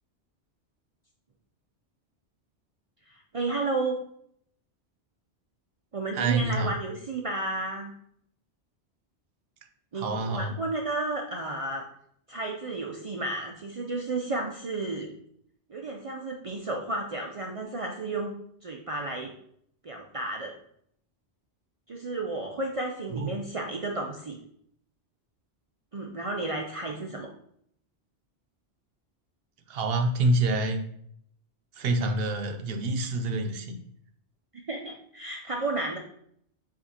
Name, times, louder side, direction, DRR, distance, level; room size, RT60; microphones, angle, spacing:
voice 1, 3.1-4.0 5.9-7.9 9.9-11.8 12.3-15.1 15.7-18.3 18.6-19.3 19.8-20.5 21.9-24.4 25.9-27.3 34.5-36.0, right 2 dB, 50° right, 0 dB, 0.4 m, -32 dB
voice 2, 6.1-6.7 9.9-10.5 23.1-23.3 29.7-30.8 31.8-33.8, right 2 dB, 65° right, 6 dB, 0.8 m, -27 dB
7.4 x 2.5 x 2.7 m, 0.68 s
omnidirectional pair, 1.1 m